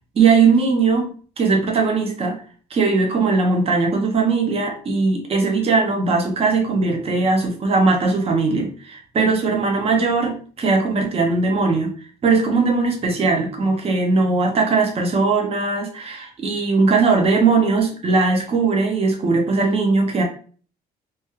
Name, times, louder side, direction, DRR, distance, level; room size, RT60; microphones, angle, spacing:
voice 1, 0.1-1.1 1.4-2.4 2.7-11.9 12.2-20.2, right 4 dB, 35° right, 2 dB, 0.8 m, -19 dB
3.1 x 2.3 x 3.0 m, 0.42 s
cardioid pair, 110°, 17 cm